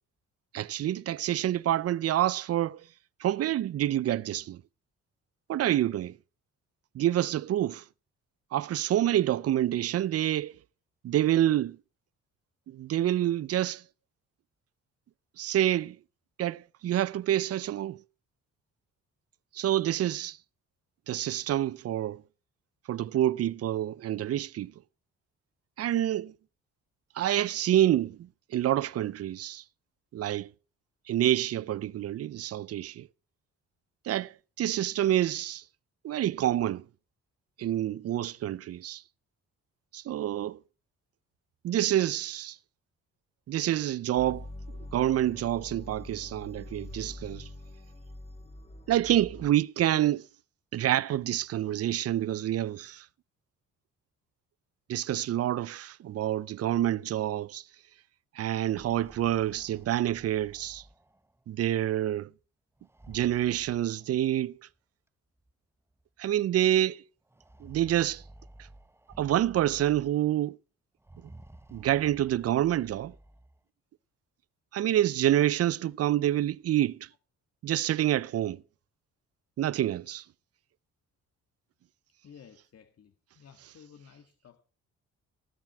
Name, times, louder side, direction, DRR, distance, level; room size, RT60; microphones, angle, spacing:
voice 1, 0.5-2.8 3.2-4.6 5.5-6.1 6.9-7.8 8.5-10.5 11.0-11.8 12.7-13.8 15.4-16.0 16.4-18.0 19.5-20.4 21.1-22.2 22.9-24.7 25.8-26.3 27.2-28.2 28.5-29.6 30.1-30.5 31.1-33.1 34.1-34.3 34.6-35.6 36.0-36.8 37.6-39.0 39.9-40.6 41.6-42.6 43.5-44.5 44.9-47.5 48.9-50.2 50.7-53.0 54.9-57.6 58.4-60.8 61.5-62.3 63.1-64.6 66.2-67.0 67.6-68.2 69.2-70.6 71.7-73.1 74.7-77.0 77.6-78.6 79.6-80.2, right 12 dB, 55° right, 0.6 m, -27 dB
sound 1, 44.2-49.5, left 1 dB, 20° left, 2.7 m, -44 dB
sound 2, 58.6-61.4 62.8-64.5 65.5-65.6 65.9-66.0 67.3-70.4 71.0-73.6, right 2 dB, 10° right, 1.1 m, -53 dB
voice 2, 82.2-84.6, left 7 dB, 55° left, 1.7 m, -54 dB
18.0 x 7.4 x 6.0 m
cardioid pair, 90°, 30 cm